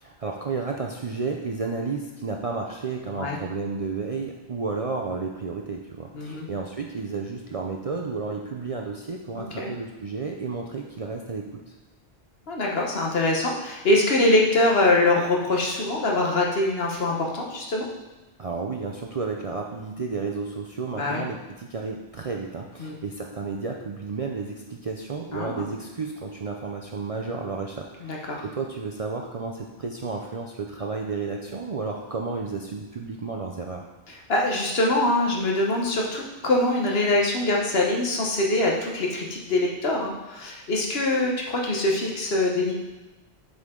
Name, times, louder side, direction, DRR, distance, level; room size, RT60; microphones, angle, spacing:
voice 1, 0.0-11.7 18.4-33.8, right 4 dB, 45° right, 1 dB, 0.5 m, -32 dB
voice 2, 6.1-6.5 9.3-9.7 12.5-17.9 20.9-21.2 22.8-23.0 25.3-25.6 28.0-28.5 34.1-42.7, left 2 dB, 65° left, -1 dB, 1.3 m, -24 dB
7.7 x 5.1 x 3.7 m, 1.1 s
omnidirectional pair, 1.1 m